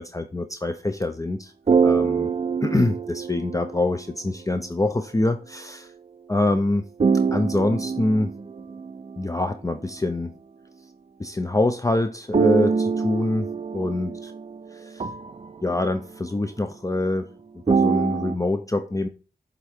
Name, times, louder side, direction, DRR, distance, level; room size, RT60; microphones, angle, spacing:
voice 1, 0.0-1.5 1.8-2.3 2.6-5.9 6.3-6.9 7.3-8.3 9.2-10.3 11.2-13.5 13.7-14.1 14.7-15.1 15.6-17.3 17.7-19.1, left 2 dB, 20° left, 8 dB, 0.5 m, -25 dB
sound 1, 1.7-4.0 7.0-9.3 12.3-16.0 17.7-18.3, right 5 dB, 40° right, 0.5 m, -24 dB
7.8 x 3.6 x 3.5 m, 0.35 s
wide cardioid pair, 70°, 17 cm